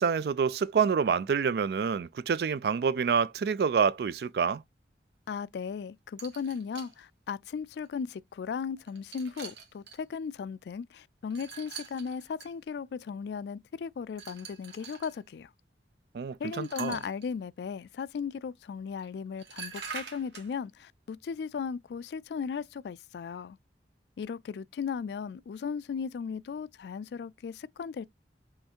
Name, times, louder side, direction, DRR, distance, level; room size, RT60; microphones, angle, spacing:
voice 1, 0.0-4.6 16.1-17.0, right 6 dB, 60° right, 0.3 m, -27 dB
voice 2, 5.3-15.5 16.4-23.6 24.2-28.1, left 6 dB, 70° left, 0.3 m, -36 dB
sound 1, 6.2-6.9 7.8-7.9 8.8-10.0 11.3-12.5 14.1-15.2 16.5-17.3 19.0-19.1 19.4-20.5, right 6 dB, 75° right, 1.3 m, -44 dB
5.6 x 3.2 x 2.8 m
head